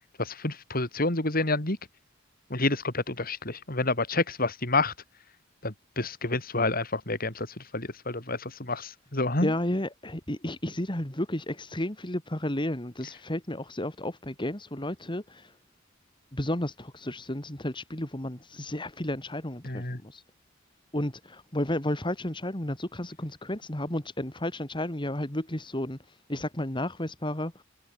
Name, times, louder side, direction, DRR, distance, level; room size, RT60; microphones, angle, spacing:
voice 1, 0.2-1.8 2.5-4.9 5.6-7.5 7.7-9.5 19.6-20.0, left 2 dB, 45° left, 4.1 m, -28 dB
voice 2, 9.4-15.5 16.3-20.2 20.9-26.0 26.3-27.6, left 1 dB, 25° left, 2.7 m, -32 dB
head